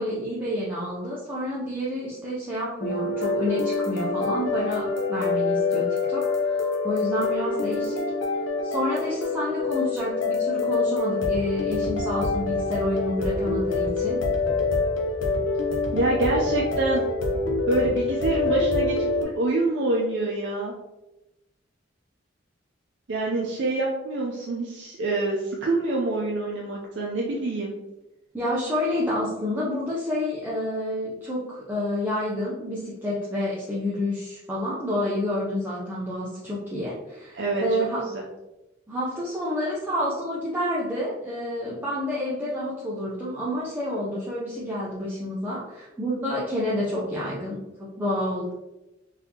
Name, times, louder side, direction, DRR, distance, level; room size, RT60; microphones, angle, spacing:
voice 1, 0.0-8.0 8.6-14.2 28.3-38.0 38.9-48.5, left 1 dB, 10° right, -8 dB, 0.6 m, -29 dB
sound 1, 2.8-19.2, left 3 dB, 80° left, 0.6 m, -26 dB
voice 2, 15.9-17.0 17.3-20.7 23.1-27.7 37.3-37.6 38.1-38.2, right 2 dB, 65° right, -2 dB, 0.5 m, -26 dB
4.0 x 2.7 x 2.8 m, 0.98 s
head